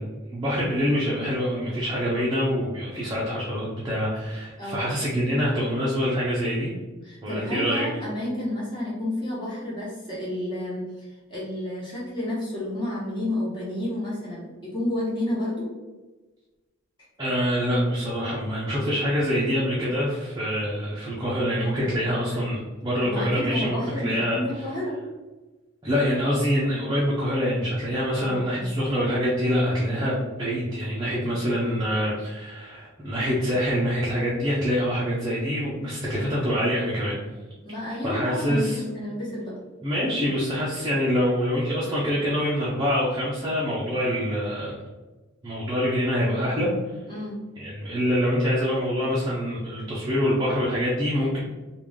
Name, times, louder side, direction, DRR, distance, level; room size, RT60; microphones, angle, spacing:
voice 1, 0.0-6.7 7.2-7.9 17.2-24.4 25.8-37.2 38.0-38.8 39.8-44.7 45.4-46.7 47.6-51.4, equal, 20° right, -7 dB, 0.6 m, -25 dB
voice 2, 4.6-4.9 7.0-15.7 23.0-25.0 28.1-28.7 37.6-39.5 47.1-47.4, left 1 dB, 20° left, -7 dB, 1.3 m, -31 dB
3.3 x 2.4 x 3.5 m, 1.2 s
head